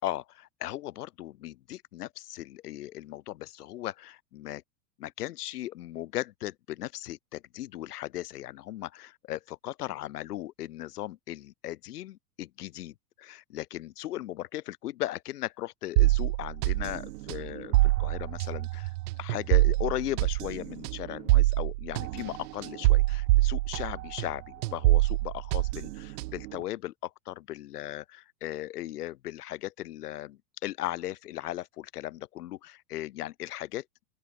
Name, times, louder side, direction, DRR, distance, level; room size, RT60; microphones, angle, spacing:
voice 1, 0.0-4.6 5.0-18.9 19.2-33.9, left 14 dB, 80° left, 3.7 m, -37 dB
sound 1, 16.0-24.3 24.6-26.5, right 19 dB, 80° right, 0.6 m, -25 dB
open air
supercardioid pair, 125°, 46 cm